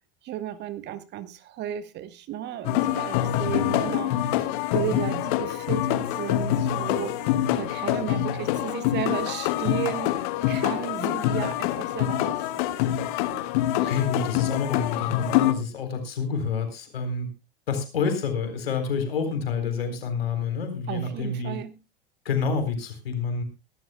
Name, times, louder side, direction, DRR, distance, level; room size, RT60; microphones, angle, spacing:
voice 1, 0.2-12.8 13.2-13.5 13.8-14.0 20.9-21.8, right 11 dB, 35° right, 1.1 m, -34 dB
sound 1, 2.6-15.5, left 12 dB, 50° left, 1.2 m, -25 dB
voice 2, 3.4-3.9 13.6-17.3 17.7-21.6 22.2-23.4, left 5 dB, 70° left, 4.0 m, -28 dB
23.0 x 12.0 x 2.3 m
figure-of-eight pair, 85°, 31 cm